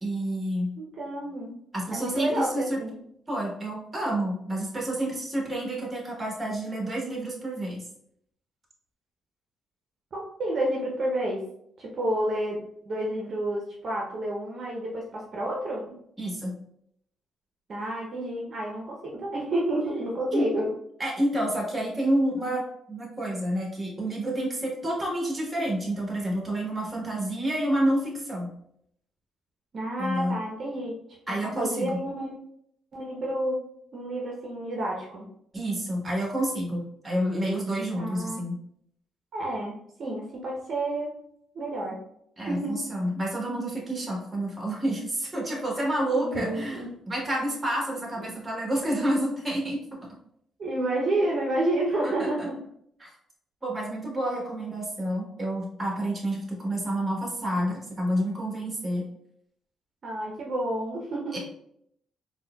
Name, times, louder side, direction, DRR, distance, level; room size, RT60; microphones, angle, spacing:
voice 1, 0.0-0.7 1.7-2.8 3.3-7.8 16.2-16.5 20.3-20.5 21.0-22.6 22.9-28.5 30.0-30.4 31.3-32.0 35.5-38.6 42.4-49.8 52.0-52.5 53.0-53.1 53.6-59.1 61.3-61.4, right 1 dB, 20° right, -2 dB, 1.2 m, -29 dB
voice 2, 0.8-1.5 1.9-3.0 10.1-11.4 11.8-12.6 12.9-16.0 17.7-20.7 29.7-30.9 31.6-32.3 32.9-33.6 33.9-35.3 37.9-38.4 39.3-41.1 41.5-42.0 42.5-42.8 46.1-46.9 48.2-48.3 50.6-52.6 60.0-61.4, right 1 dB, 50° right, -3 dB, 0.7 m, -30 dB
4.2 x 2.2 x 2.2 m, 0.72 s
cardioid pair, 90°, 0 cm